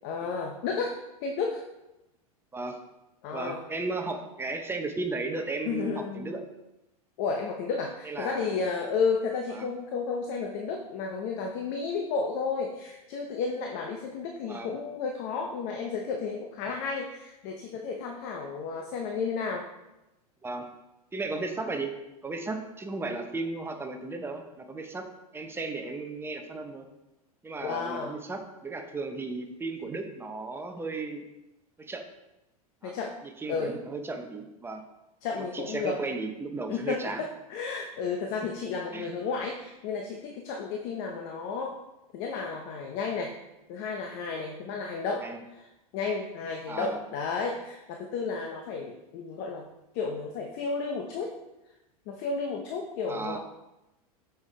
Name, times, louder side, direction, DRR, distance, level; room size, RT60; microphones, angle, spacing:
voice 1, 0.0-1.0 1.2-1.6 3.2-3.6 5.7-6.4 7.2-19.7 27.6-28.1 32.8-33.2 33.5-33.8 35.2-36.0 36.7-41.8 42.1-43.3 43.7-45.3 45.5-45.6 45.9-49.7 49.9-51.4 52.1-53.4, left 5 dB, 55° left, 2 dB, 0.9 m, -32 dB
voice 2, 3.3-6.4 8.0-8.7 9.5-9.7 14.5-14.7 20.4-20.7 21.1-21.9 22.2-25.0 25.3-26.9 27.4-31.2 31.8-32.0 32.8-33.0 33.4-34.8 35.3-37.2 38.9-39.1 45.2-45.4 46.7-47.0 53.1-53.4, right 3 dB, 10° right, 4 dB, 0.8 m, -35 dB
7.0 x 5.7 x 3.3 m, 0.96 s
hypercardioid pair, 115°, 19 cm